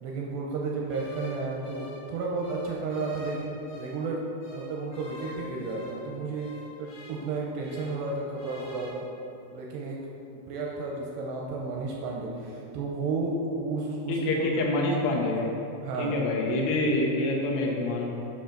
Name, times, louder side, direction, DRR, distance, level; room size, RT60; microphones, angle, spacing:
voice 1, 0.0-4.2 4.5-6.5 6.8-9.1 9.5-10.0 10.5-14.5 15.8-16.2, right 3 dB, 85° right, -2 dB, 2.5 m, -32 dB
sound 1, 0.9-4.1 4.4-8.1 8.3-8.9, left 2 dB, 55° left, 1.7 m, -46 dB
voice 2, 14.1-15.5 16.0-18.1, left 2 dB, 85° left, -1 dB, 3.5 m, -26 dB
10.0 x 5.7 x 3.9 m, 2.7 s
omnidirectional pair, 5.4 m